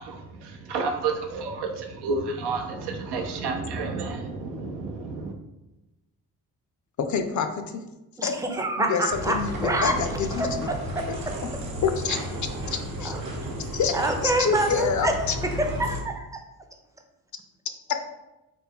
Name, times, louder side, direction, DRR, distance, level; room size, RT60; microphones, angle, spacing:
voice 1, 0.0-5.3, right 4 dB, 80° right, 3 dB, 0.6 m, -30 dB
voice 2, 7.0-7.8 8.2-8.4 8.8-10.7 11.1-11.2 11.8-12.2 12.7-13.3 13.7-15.4, left 6 dB, 50° left, 7 dB, 0.5 m, -27 dB
voice 3, 8.2-10.0 10.4-11.4 13.0-13.2 13.9-15.1 15.4-16.4, right 1 dB, 10° right, 3 dB, 0.5 m, -27 dB
sound 1, 9.1-16.0, equal, 60° right, 1.0 m, -33 dB
3.4 x 2.2 x 3.4 m, 0.98 s
supercardioid pair, 60°, 40 cm